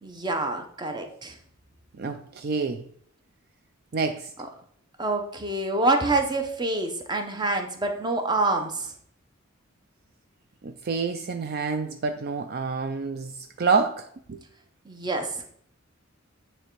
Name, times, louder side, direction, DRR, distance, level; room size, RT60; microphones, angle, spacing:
voice 1, 0.0-1.3 5.0-8.9 14.9-15.5, right 2 dB, 20° right, 0.8 m, -26 dB
voice 2, 2.0-2.8 3.9-4.3 10.6-14.4, right 4 dB, 50° right, 0.4 m, -28 dB
9.1 x 3.3 x 4.6 m
head